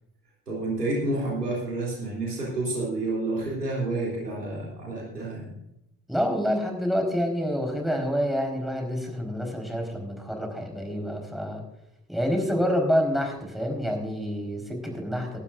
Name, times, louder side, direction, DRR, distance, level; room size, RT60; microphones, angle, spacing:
voice 1, 0.5-5.5, right 2 dB, 90° right, -4 dB, 3.3 m, -29 dB
voice 2, 6.1-11.6 12.1-15.4, equal, ahead, 2 dB, 4.5 m, -27 dB
18.5 x 12.0 x 2.6 m, 0.83 s
figure-of-eight pair, 50°, 46 cm